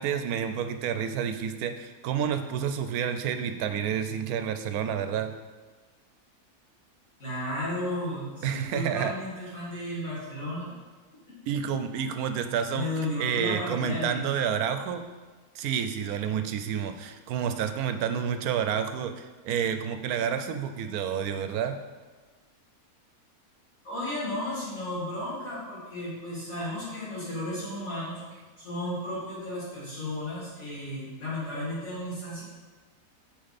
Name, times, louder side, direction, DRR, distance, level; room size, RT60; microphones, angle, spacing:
voice 1, 0.0-5.3 8.4-9.1 11.5-12.9 13.2-15.0 15.5-21.8, right 8 dB, 75° right, 8 dB, 1.0 m, -29 dB
voice 2, 7.2-10.8 11.3-11.4 12.7-14.4 23.8-28.2 28.6-32.4, left 1 dB, 60° left, -9 dB, 2.9 m, -34 dB
6.4 x 5.7 x 4.1 m, 1.3 s
omnidirectional pair, 1.6 m